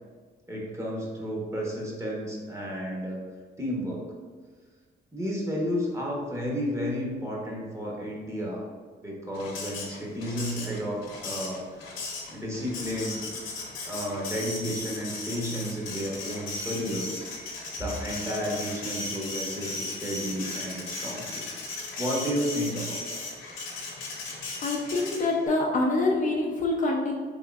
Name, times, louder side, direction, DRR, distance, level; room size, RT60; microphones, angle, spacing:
voice 1, 0.5-3.2 3.6-4.0 5.1-8.6 9.0-12.0 12.3-13.2 13.6-17.3 17.8-23.2, equal, 15° right, -3 dB, 0.9 m, -32 dB
Printer, 9.3-25.5, left 3 dB, 80° left, 0.8 m, -37 dB
voice 2, 24.6-27.1, left 2 dB, 40° left, -1 dB, 0.5 m, -25 dB
3.5 x 3.0 x 2.3 m, 1.5 s
cardioid pair, 90°, 20 cm